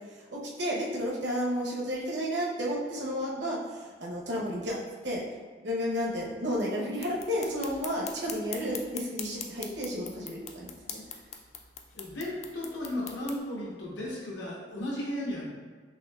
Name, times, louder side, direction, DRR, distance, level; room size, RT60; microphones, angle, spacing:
voice 1, 0.3-4.8 5.0-5.2 5.6-11.0, equal, 70° right, -3 dB, 0.9 m, -32 dB
sound 1, 7.0-13.4, left 7 dB, 35° left, 0.3 m, -43 dB
voice 2, 11.9-15.5, left 1 dB, 80° left, -5 dB, 1.1 m, -35 dB
6.1 x 2.7 x 2.3 m, 1.5 s
head